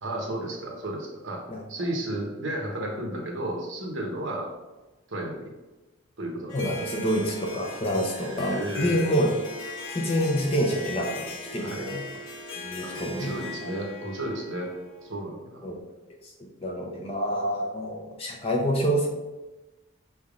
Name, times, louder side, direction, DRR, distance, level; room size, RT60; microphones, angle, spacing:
voice 1, 0.0-1.4 1.7-4.5 5.1-5.5 6.2-7.0 8.1-9.1 11.6-11.9 12.8-14.7 15.0-15.6, right 1 dB, 70° right, 0 dB, 1.0 m, -33 dB
Harp, 6.5-15.2, left 2 dB, 85° left, 0.8 m, -39 dB
voice 2, 6.5-9.3 9.9-11.3 11.5-12.0 12.6-13.5 15.6-15.8 16.6-19.1, equal, 30° left, 0 dB, 0.7 m, -27 dB
5.5 x 3.4 x 2.5 m, 1.1 s
head